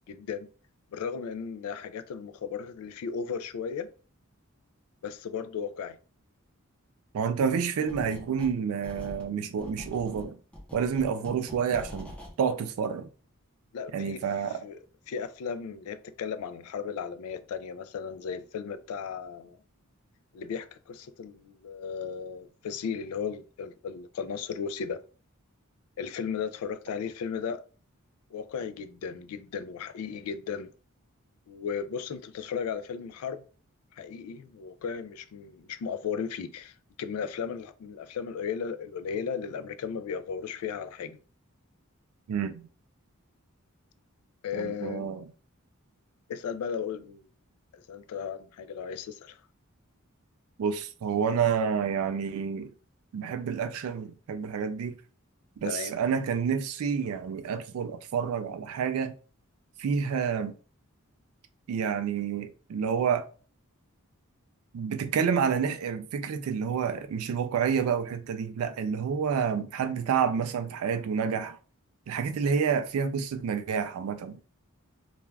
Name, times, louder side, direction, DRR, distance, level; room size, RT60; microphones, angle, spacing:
voice 1, 0.1-0.5 0.9-3.9 5.0-6.0 13.7-14.2 14.6-14.8 15.1-19.6 20.3-25.0 26.0-27.6 28.3-30.7 31.5-33.4 33.9-41.2 44.4-45.2 46.3-47.2 47.7-49.4 55.6-56.0, left 6 dB, 85° left, 0.3 m, -35 dB
voice 2, 7.1-10.4 10.7-13.1 13.9-14.7 42.3-42.7 44.5-45.3 50.6-52.7 53.1-55.0 55.6-59.1 59.8-60.5 61.7-63.3 64.7-71.6 72.1-74.4, right 6 dB, 80° right, 0.3 m, -29 dB
sound 1, 7.9-8.6 8.8-12.3, left 1 dB, 5° left, 0.5 m, -44 dB
2.4 x 2.2 x 3.2 m
head